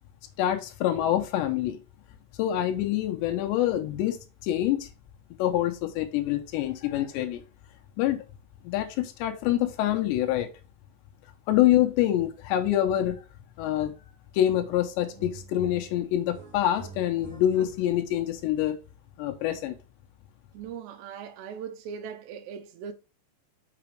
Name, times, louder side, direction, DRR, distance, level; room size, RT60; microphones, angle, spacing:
voice 1, 0.4-1.8 2.4-4.2 4.4-4.9 5.4-7.4 8.0-8.2 8.6-10.5 11.5-13.2 13.6-13.9 14.3-18.8 19.2-19.8, left 12 dB, 85° left, 3.1 m, -26 dB
sound 1, 14.5-14.8 15.1-18.2, right 5 dB, 30° right, 1.4 m, -46 dB
voice 2, 20.5-22.9, right 7 dB, 85° right, 3.0 m, -39 dB
6.0 x 5.9 x 3.2 m
omnidirectional pair, 4.9 m